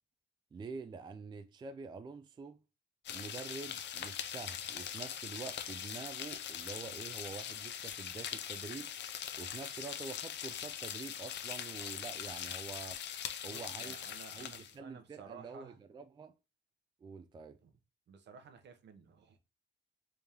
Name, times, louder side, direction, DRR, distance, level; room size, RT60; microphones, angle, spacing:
voice 1, 0.5-2.6 3.1-8.9 9.4-13.0 13.4-14.0 14.3-16.3 17.0-17.6, right 4 dB, 25° right, 0.3 m, -46 dB
sound 1, 3.0-14.7, left 9 dB, 65° left, 0.5 m, -42 dB
voice 2, 13.4-15.8 17.6-17.7 18.1-19.4, right 5 dB, 60° right, 0.8 m, -54 dB
3.5 x 3.4 x 2.8 m
cardioid pair, 90°, 20 cm